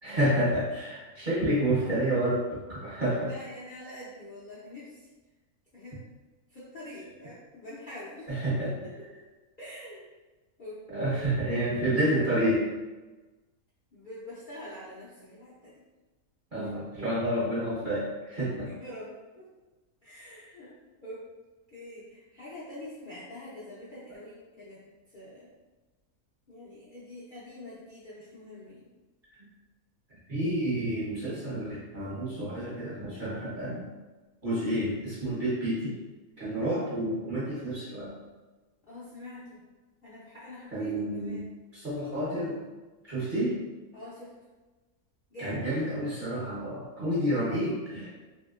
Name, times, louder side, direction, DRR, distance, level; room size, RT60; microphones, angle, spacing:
voice 1, 0.0-3.3 8.3-8.7 10.9-12.6 16.5-18.7 29.3-29.5 30.3-33.9 34.4-36.0 36.4-38.1 40.7-41.5 41.7-42.7 43.0-43.6 45.4-48.2, right 1 dB, 40° right, -9 dB, 0.9 m, -29 dB
voice 2, 3.1-5.1 5.7-6.0 6.5-8.3 8.8-8.9 9.6-10.1 10.6-10.8 11.1-11.4 13.9-15.8 16.6-16.7 18.6-19.5 20.0-20.7 21.0-21.3 21.7-25.5 26.5-28.9 38.8-39.6 40.0-41.4 43.9-44.3 45.3-45.6, left 1 dB, 50° left, -10 dB, 0.7 m, -45 dB
2.9 x 2.9 x 2.3 m, 1.2 s
omnidirectional pair, 1.5 m